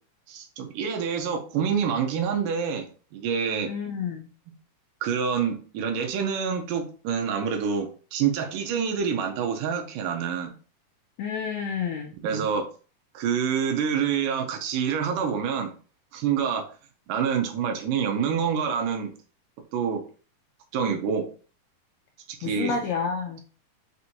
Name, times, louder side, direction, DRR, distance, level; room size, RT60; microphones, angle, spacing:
voice 1, 0.3-2.9 3.1-3.7 5.0-10.5 12.2-12.7 13.1-15.7 16.1-16.7 17.1-19.1 19.7-20.0 20.7-21.3 22.3-22.8, right 7 dB, 85° right, 4 dB, 2.4 m, -27 dB
voice 2, 3.7-4.3 11.2-12.1 22.4-23.4, left 6 dB, 80° left, 3 dB, 1.6 m, -29 dB
5.9 x 2.6 x 2.8 m, 0.38 s
omnidirectional pair, 3.7 m